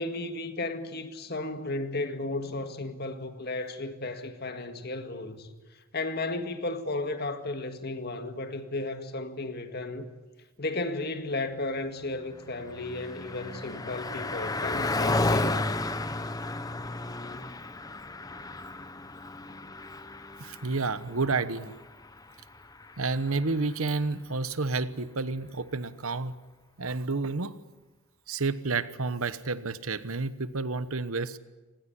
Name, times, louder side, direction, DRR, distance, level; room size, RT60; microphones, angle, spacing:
voice 1, 0.0-5.5 5.9-10.1 10.6-15.8 19.5-19.7, left 2 dB, 45° left, 1.9 m, -34 dB
Car passing by, 12.1-23.9, left 2 dB, 15° left, 0.9 m, -33 dB
voice 2, 20.4-21.7 23.0-26.4 26.8-27.5 28.3-31.4, right 3 dB, 75° right, 1.1 m, -30 dB
26.0 x 19.5 x 9.9 m
head